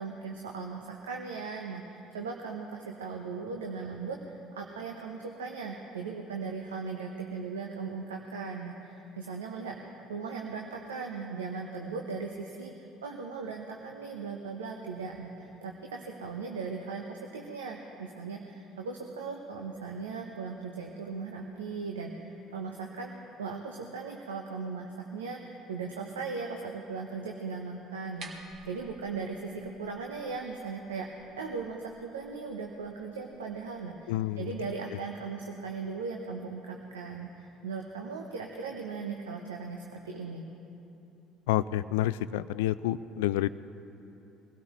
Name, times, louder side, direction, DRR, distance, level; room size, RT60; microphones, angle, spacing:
voice 1, 0.0-12.7 13.0-23.1 23.4-40.4, right 4 dB, 85° right, 1 dB, 0.8 m, -38 dB
sound 1, 27.9-33.9, right 2 dB, 50° right, 1.8 m, -54 dB
voice 2, 34.1-34.5 34.9-35.0 41.5-43.5, left 13 dB, 75° left, 16 dB, 0.3 m, -29 dB
23.0 x 16.5 x 3.1 m, 2.9 s
hypercardioid pair, 60°, 0 cm